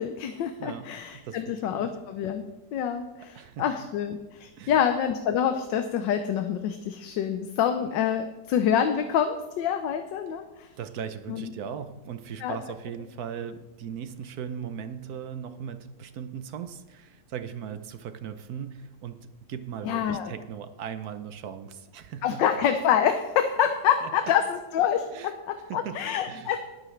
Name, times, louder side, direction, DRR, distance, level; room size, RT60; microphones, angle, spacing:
voice 1, 0.0-2.4 2.7-10.7 11.3-11.5 12.4-12.6 19.8-20.3 22.2-26.6, left 8 dB, 85° left, 7 dB, 1.4 m, -26 dB
voice 2, 0.6-1.9 3.3-3.7 4.6-4.7 10.8-22.4 24.0-24.1 25.1-25.3 25.7-26.5, right 8 dB, 65° right, 10 dB, 1.1 m, -38 dB
19.5 x 8.9 x 3.2 m, 1.1 s
omnidirectional pair, 1.9 m